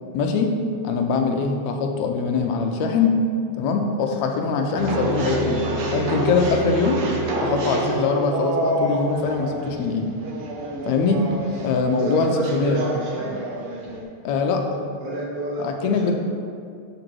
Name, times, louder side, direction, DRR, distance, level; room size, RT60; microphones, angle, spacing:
voice 1, 0.1-0.5 0.8-3.1 3.6-5.7 5.9-7.1 7.4-10.1 10.9-11.2 11.6-12.8 14.2-14.6 15.6-16.1, left 4 dB, 80° left, 3 dB, 1.9 m, -22 dB
sound 1, 4.8-14.0, right 2 dB, 65° right, 1.5 m, -27 dB
voice 2, 12.0-13.4 15.0-16.1, right 2 dB, 85° right, -9 dB, 3.4 m, -30 dB
6.8 x 3.9 x 6.1 m, 2.4 s
omnidirectional pair, 3.3 m